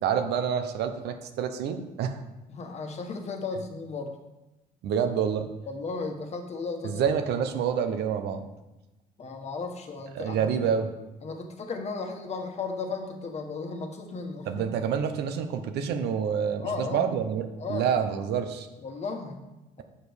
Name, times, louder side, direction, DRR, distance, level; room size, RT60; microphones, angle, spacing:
voice 1, 0.0-2.2 4.8-5.5 6.8-8.5 10.2-10.9 14.5-18.7, right 7 dB, 75° right, 7 dB, 1.0 m, -27 dB
voice 2, 2.5-4.1 5.7-7.1 9.2-10.7 11.2-14.7 16.6-17.1 17.6-17.9 18.8-19.8, left 4 dB, 40° left, 4 dB, 1.3 m, -35 dB
7.6 x 5.1 x 6.3 m, 1.0 s
cardioid pair, 110°, 17 cm